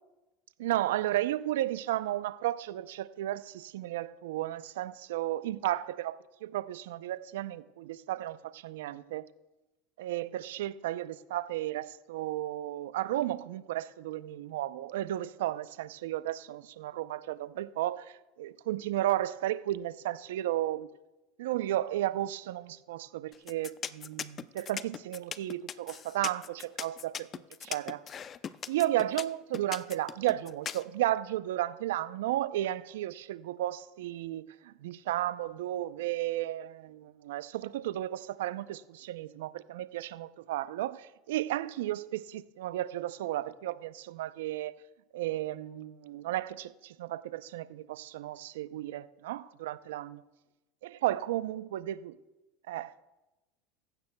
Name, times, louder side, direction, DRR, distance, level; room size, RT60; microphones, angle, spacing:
voice 1, 0.6-9.2 10.0-20.9 21.4-27.3 27.6-28.0 28.7-44.8 45.1-50.2 51.0-52.1 52.7-53.1, right 14 dB, 75° right, 0.5 m, -33 dB
sound 1, 23.3-30.8, left 8 dB, 35° left, 0.6 m, -39 dB
16.0 x 15.0 x 2.3 m
hypercardioid pair, 85°, 0 cm